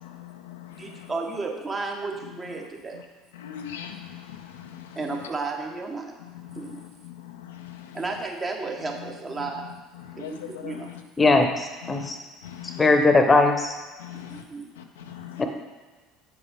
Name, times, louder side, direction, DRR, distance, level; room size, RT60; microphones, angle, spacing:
voice 1, 0.0-1.1 2.9-3.0 3.3-5.2 6.2-8.0 9.4-9.5 10.0-11.4 11.8-12.1 12.4-13.0 14.0-14.4 14.8-15.4, left 10 dB, 80° left, 5 dB, 0.5 m, -41 dB
voice 2, 0.7-3.0 4.9-6.2 6.5-6.8 7.9-9.7 10.2-10.9 11.2-11.4 14.1-14.7, right 3 dB, 25° right, 2 dB, 1.2 m, -33 dB
voice 3, 11.2-12.2 12.8-13.7 15.4-15.5, left 3 dB, 20° left, 5 dB, 0.9 m, -19 dB
7.8 x 5.4 x 3.7 m, 1.3 s
hypercardioid pair, 70°, 0 cm